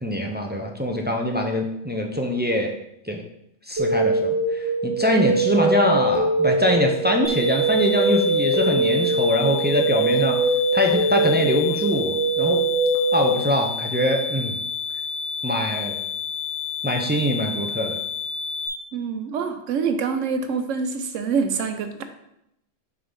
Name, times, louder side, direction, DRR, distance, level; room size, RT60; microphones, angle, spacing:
voice 1, 0.0-2.7 3.1-3.2 3.7-10.4 10.7-12.6 13.1-14.5 15.4-16.0 16.8-17.9, equal, 15° right, 2 dB, 0.4 m, -23 dB
sound 1, 3.8-13.3, right 2 dB, 55° right, 1.5 m, -22 dB
sound 2, 7.2-18.7, left 6 dB, 20° left, 1.5 m, -30 dB
voice 2, 18.9-22.0, right 5 dB, 85° right, 8 dB, 1.1 m, -25 dB
7.0 x 3.6 x 5.3 m, 0.79 s
omnidirectional pair, 1.3 m